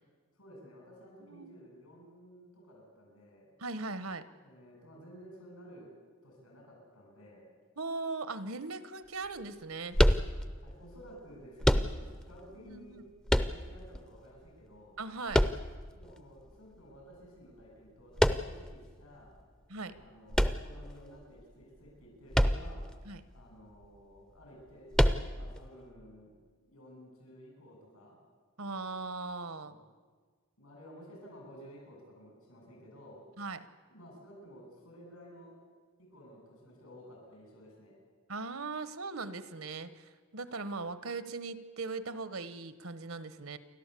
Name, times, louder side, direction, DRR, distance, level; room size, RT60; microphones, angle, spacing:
voice 1, 0.4-3.5 4.4-5.9 6.2-7.5 10.6-13.0 13.3-15.0 15.9-19.3 19.9-22.8 23.3-26.3 26.7-28.2 29.6-29.9 30.6-33.2 33.9-35.6 36.0-38.0, equal, 85° left, 0 dB, 8.0 m, -53 dB
voice 2, 1.2-1.6 3.6-4.2 7.8-10.0 12.6-13.0 15.0-15.5 19.7-19.9 23.0-23.2 28.6-29.7 33.4-33.6 38.3-43.6, right 3 dB, 75° right, 14 dB, 1.1 m, -39 dB
sound 1, 9.9-10.7 11.6-12.3 13.3-14.0 15.3-16.1 18.2-18.7 20.3-21.2 22.3-22.9 23.2-23.3 24.9-25.6, equal, 5° left, 0.5 m, -26 dB
29.5 x 12.0 x 8.4 m, 1.5 s
head